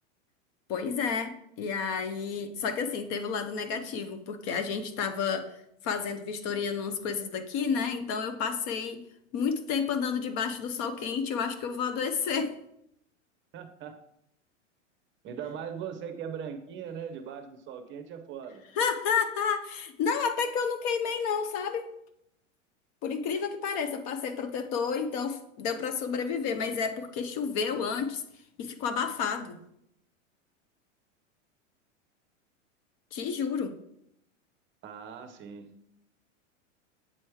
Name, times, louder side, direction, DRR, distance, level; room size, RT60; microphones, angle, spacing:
voice 1, 0.7-5.5 5.8-9.0 9.3-12.5 18.8-21.9 23.0-28.2 28.6-29.6 33.1-33.8, left 6 dB, 40° left, 9 dB, 0.7 m, -30 dB
voice 2, 13.5-14.0 15.2-18.6 34.8-35.7, right 7 dB, 30° right, 8 dB, 0.7 m, -39 dB
7.5 x 3.2 x 4.7 m, 0.76 s
hypercardioid pair, 110°, 38 cm